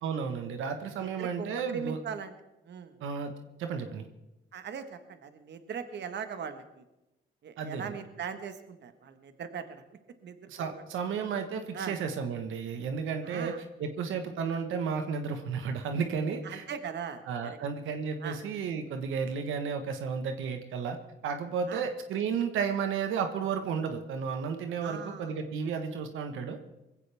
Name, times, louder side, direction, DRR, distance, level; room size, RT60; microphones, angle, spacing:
voice 1, 0.0-2.0 3.0-3.3 3.6-4.1 7.6-7.9 10.5-13.5 13.8-16.6 17.3-21.0 21.2-26.6, right 6 dB, 85° right, 6 dB, 1.4 m, -33 dB
voice 2, 1.0-2.3 2.7-2.9 4.5-6.8 7.4-9.8 10.2-10.8 11.7-12.0 13.2-13.6 16.4-17.6 18.2-18.4 21.7-21.8 24.8-25.3, right 7 dB, 60° right, 8 dB, 1.5 m, -40 dB
20.5 x 16.0 x 3.5 m, 0.94 s
cardioid pair, 90°, 20 cm